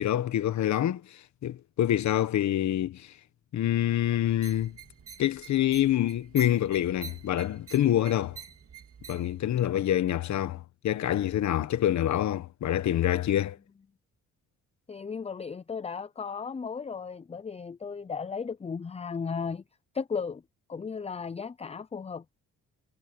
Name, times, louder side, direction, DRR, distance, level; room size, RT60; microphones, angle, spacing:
voice 1, 0.0-3.1 3.5-4.8 5.2-8.4 9.1-13.6, left 12 dB, 65° left, 1.4 m, -26 dB
sound 1, 4.3-9.4, right 7 dB, 50° right, 3.6 m, -47 dB
voice 2, 14.9-19.6 19.9-20.4 20.7-22.2, left 5 dB, 20° left, 0.6 m, -35 dB
cardioid pair, 90°, 30 cm